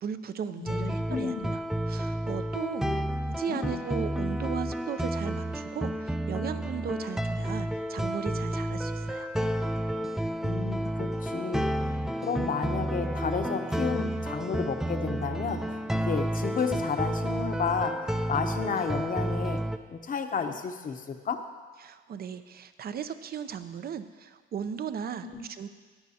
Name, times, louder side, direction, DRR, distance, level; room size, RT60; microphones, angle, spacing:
voice 1, 0.0-1.6 1.9-3.0 3.4-9.3 21.8-25.7, right 7 dB, 50° right, 11 dB, 0.6 m, -37 dB
voice 2, 0.6-1.5 2.8-3.0 3.5-3.8 10.4-11.9 12.2-19.6 19.9-21.4 25.2-25.4, left 6 dB, 45° left, 7 dB, 0.8 m, -32 dB
sound 1, 0.7-19.8, right 1 dB, ahead, 0.3 m, -31 dB
14.5 x 9.2 x 2.8 m, 1.5 s
cardioid pair, 90°, 20 cm